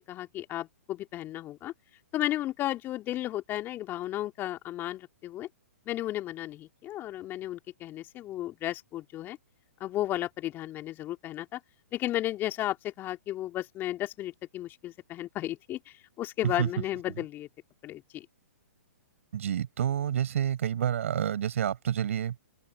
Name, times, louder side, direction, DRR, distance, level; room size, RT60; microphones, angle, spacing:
voice 1, 0.0-1.7 2.1-5.5 5.9-9.4 9.8-11.6 11.9-17.5 17.8-18.2, left 14 dB, 25° left, 2.9 m, -34 dB
voice 2, 19.3-22.4, right 9 dB, 60° right, 7.5 m, -28 dB
figure-of-eight pair, 120°, 8 cm